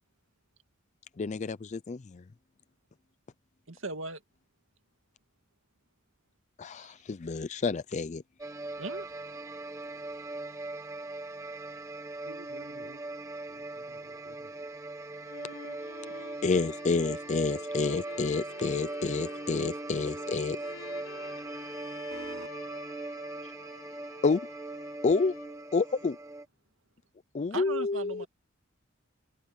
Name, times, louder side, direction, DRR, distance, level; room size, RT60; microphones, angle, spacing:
voice 1, 1.2-2.2 6.6-8.2 16.4-20.6 24.2-24.4 25.0-25.3 25.7-26.2 27.3-28.2, left 4 dB, 35° left, 0.4 m, -29 dB
voice 2, 3.7-4.2 6.8-6.9 8.8-9.1 27.5-28.3, right 3 dB, 65° right, 2.3 m, -38 dB
sound 1, 8.4-26.4, right 2 dB, 15° right, 1.3 m, -40 dB
voice 3, 12.3-13.0 13.5-14.7 22.1-22.5, right 2 dB, 85° right, 3.5 m, -50 dB
sound 2, 14.9-25.8, left 4 dB, 85° left, 3.9 m, -49 dB
head